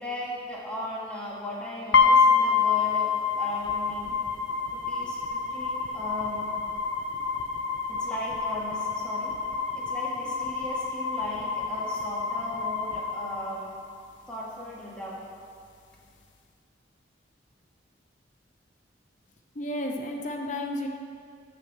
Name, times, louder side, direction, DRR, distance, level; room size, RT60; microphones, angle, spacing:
voice 1, 0.0-4.2 4.7-6.6 7.9-9.4 9.7-13.8 14.3-15.2, left 1 dB, 5° left, -5 dB, 1.6 m, -37 dB
sound 1, 1.9-13.9, left 5 dB, 80° left, 0.7 m, -27 dB
voice 2, 19.5-20.9, left 1 dB, 40° left, 2 dB, 0.7 m, -32 dB
6.4 x 6.0 x 7.3 m, 2.3 s
head